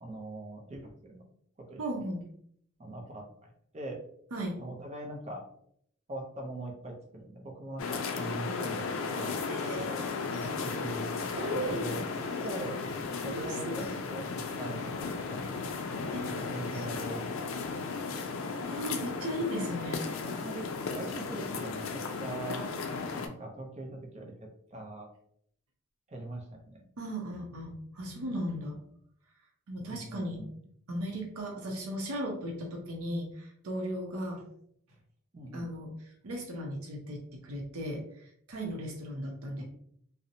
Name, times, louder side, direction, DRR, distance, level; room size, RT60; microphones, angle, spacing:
voice 1, 0.0-1.2 1.6-2.0 2.8-4.0 4.6-5.4 6.1-9.4 9.7-9.8 10.3-12.0 12.4-12.7 13.2-15.6 15.9-17.5 17.9-18.2 20.0-20.7 20.9-22.7 23.3-25.1 26.1-26.8 29.8-30.5 35.3-35.7 39.6-39.7, right 1 dB, 30° right, 1 dB, 0.5 m, -42 dB
voice 2, 1.8-2.2 4.3-4.6 9.5-10.1 11.4-12.1 13.2-13.8 16.1-16.7 18.7-20.0 27.0-28.9 29.7-30.4 30.9-34.4 35.5-39.6, equal, 85° right, 0 dB, 0.5 m, -36 dB
sound 1, 7.8-23.3, left 4 dB, 65° left, 0.4 m, -35 dB
2.7 x 2.0 x 2.5 m, 0.67 s
head